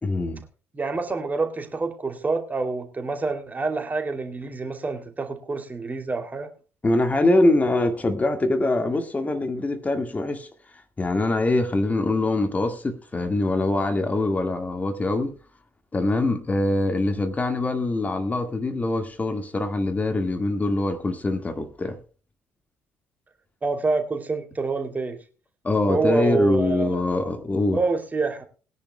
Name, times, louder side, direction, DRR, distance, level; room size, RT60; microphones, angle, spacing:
voice 1, 0.0-0.4 6.8-10.5 11.0-15.4 15.9-22.0 25.6-27.8, left 2 dB, 25° left, 1.9 m, -23 dB
voice 2, 0.7-6.5 23.6-25.2 25.9-27.0 27.7-28.5, right 4 dB, 25° right, 2.9 m, -27 dB
21.5 x 10.5 x 2.3 m
figure-of-eight pair, 50°, 6 cm